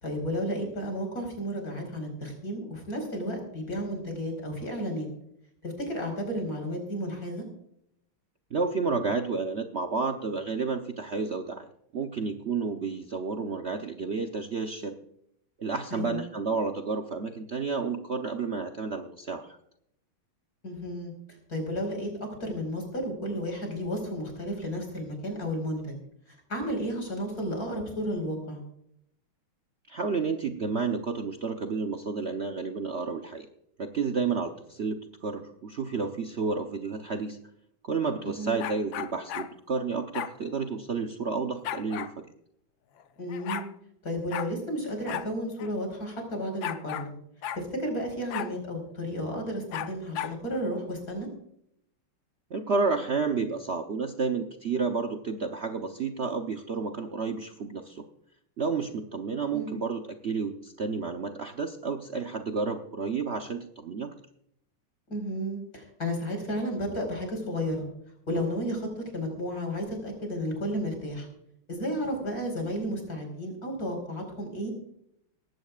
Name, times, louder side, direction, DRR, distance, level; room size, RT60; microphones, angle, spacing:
voice 1, 0.0-5.1 5.6-7.5 15.9-16.2 20.6-21.1 21.5-22.1 22.4-26.0 26.3-28.6 38.2-38.6 43.2-43.6 44.0-47.1 47.5-51.3 59.5-59.7 65.1-67.9 68.3-71.3 71.7-74.7, equal, 45° left, 2 dB, 5.2 m, -32 dB
voice 2, 8.5-11.6 11.9-15.0 15.6-19.6 29.9-33.5 33.8-37.4 37.9-42.3 52.5-58.1 58.6-64.1, right 4 dB, 80° right, 5 dB, 0.5 m, -31 dB
sound 1, 38.6-39.5 40.1-40.3 41.6-42.1 43.0-43.1 43.3-43.7 44.3-44.5 45.1-45.3 45.6-45.7 46.6-47.1 47.4-47.6 48.3-48.5 49.7-50.4, left 10 dB, 70° left, 1.4 m, -34 dB
19.0 x 16.0 x 2.4 m, 0.73 s
omnidirectional pair, 2.3 m